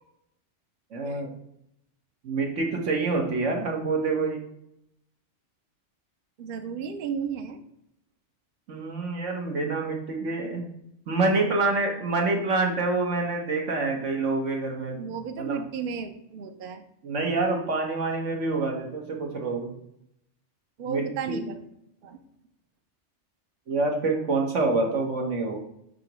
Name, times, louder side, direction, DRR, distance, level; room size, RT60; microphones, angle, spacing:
voice 1, 0.9-1.3 2.2-4.4 8.7-10.6 11.1-15.0 15.4-15.6 17.0-19.7 20.9-21.4 23.7-25.6, right 3 dB, 80° right, 1 dB, 1.6 m, -26 dB
voice 2, 6.4-7.6 15.0-16.8 20.8-21.6 22.0-22.2, right 6 dB, 55° right, 7 dB, 0.8 m, -34 dB
8.3 x 3.0 x 6.1 m, 0.79 s
omnidirectional pair, 1.2 m